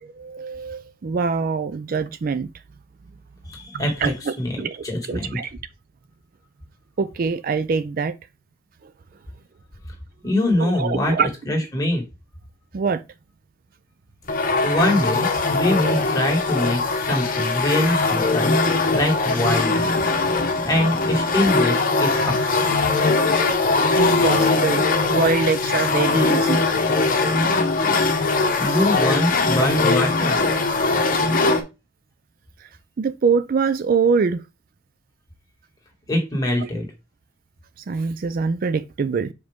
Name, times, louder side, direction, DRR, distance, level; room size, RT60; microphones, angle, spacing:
voice 1, 0.0-2.5 3.7-5.5 7.0-8.1 10.6-11.3 12.7-13.0 22.8-23.0 23.6-26.6 32.6-32.7 33.0-34.4 36.6-36.7 37.8-39.3, right 5 dB, 45° right, 0.3 m, -24 dB
voice 2, 3.5-5.4 10.2-11.1 11.5-12.0 14.6-18.6 18.9-20.1 20.7-22.3 28.6-30.4 36.1-36.9, left 1 dB, 15° left, 2.0 m, -23 dB
sound 1, 14.3-31.6, left 3 dB, 45° left, 1.0 m, -21 dB
6.0 x 5.1 x 3.5 m
head